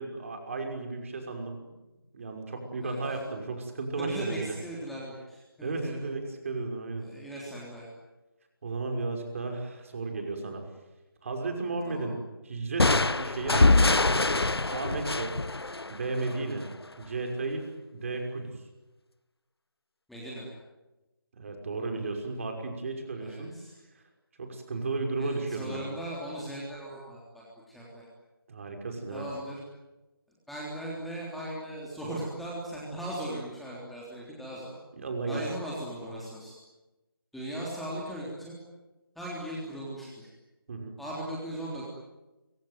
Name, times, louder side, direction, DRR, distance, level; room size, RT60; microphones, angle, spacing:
voice 1, 0.0-1.6 2.1-4.5 5.6-7.1 8.6-10.6 11.2-12.2 12.4-14.2 14.7-15.4 15.9-16.7 17.0-17.7 17.9-18.5 21.3-23.5 24.4-25.8 28.5-29.3 34.9-35.5 40.7-41.0, right 3 dB, 35° right, 4 dB, 5.8 m, -34 dB
voice 2, 2.8-3.2 4.0-6.0 7.0-7.9 11.9-12.1 20.1-20.5 23.2-23.7 25.2-28.0 29.1-29.6 30.5-34.7 35.3-36.6 37.3-38.6 39.2-40.3 41.0-41.9, right 1 dB, ahead, -6 dB, 3.5 m, -38 dB
sound 1, 12.8-16.5, left 2 dB, 90° left, 1.1 m, -24 dB
25.5 x 25.0 x 9.4 m, 1.1 s
figure-of-eight pair, 165°, 13 cm